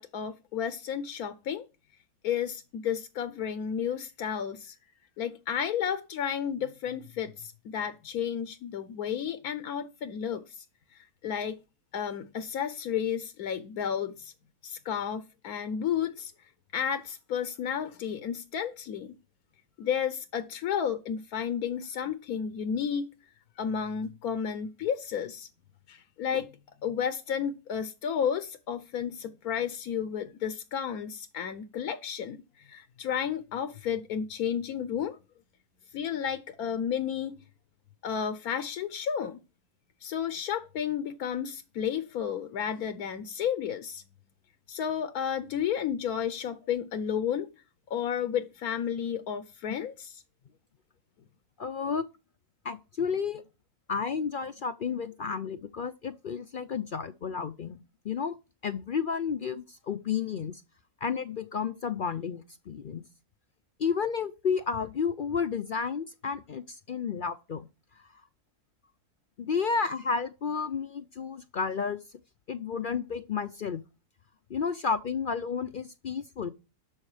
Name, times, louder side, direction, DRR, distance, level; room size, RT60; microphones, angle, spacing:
voice 1, 0.0-1.7 2.2-4.7 5.2-10.6 10.9-11.6 11.9-14.3 14.6-16.3 16.7-19.1 19.8-23.1 23.6-25.5 25.9-26.5 26.8-35.2 35.9-37.4 38.0-39.4 40.0-44.0 44.7-47.5 47.9-50.2, left 8 dB, 85° left, 1.3 m, -32 dB
voice 2, 51.6-52.1 52.6-53.4 53.9-58.4 58.6-60.5 61.0-63.0 63.8-67.7 68.0-68.2 69.4-72.0 72.5-73.8 74.5-76.5, left 6 dB, 60° left, 0.5 m, -31 dB
12.0 x 6.4 x 4.9 m
omnidirectional pair, 1.5 m